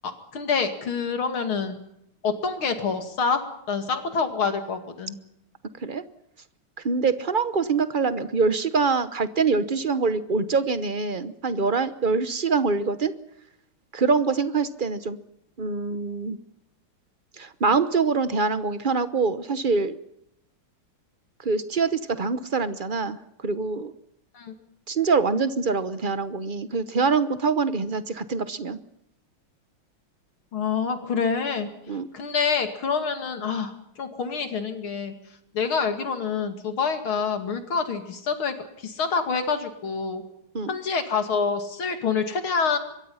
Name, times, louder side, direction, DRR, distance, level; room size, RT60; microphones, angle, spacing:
voice 1, 0.0-1.8 2.2-3.4 3.7-5.2 24.3-24.5 30.5-31.7 32.1-35.1 35.5-40.2 40.7-42.8, left 5 dB, 75° left, 7 dB, 3.2 m, -27 dB
voice 2, 6.8-13.2 13.9-15.2 15.6-16.4 17.4-20.0 21.4-23.2 23.4-23.9 24.9-28.8 31.9-32.1 40.5-40.7, right 4 dB, 45° right, 12 dB, 0.6 m, -24 dB
25.5 x 23.0 x 5.7 m, 0.77 s
omnidirectional pair, 2.3 m